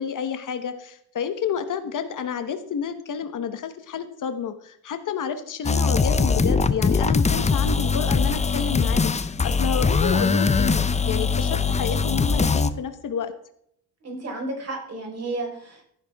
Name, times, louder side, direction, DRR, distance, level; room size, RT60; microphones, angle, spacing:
voice 1, 0.0-13.3, left 7 dB, 55° left, 9 dB, 1.2 m, -30 dB
sound 1, 5.6-12.7, left 4 dB, 20° left, 0.6 m, -21 dB
voice 2, 14.0-15.8, right 2 dB, 40° right, 1 dB, 4.7 m, -32 dB
15.5 x 10.0 x 3.6 m, 0.71 s
cardioid pair, 135°, 38 cm